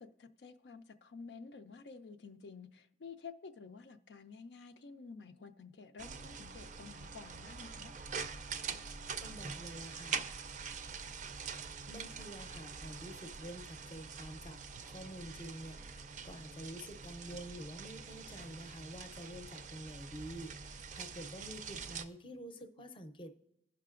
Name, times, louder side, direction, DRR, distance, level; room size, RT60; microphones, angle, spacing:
voice 1, 0.0-7.9, left 5 dB, 75° left, 0.4 m, -51 dB
sound 1, 6.0-22.1, right 5 dB, 45° right, 0.4 m, -45 dB
voice 2, 9.2-10.2 11.9-23.3, equal, 30° left, 0.6 m, -48 dB
16.5 x 5.7 x 2.4 m
head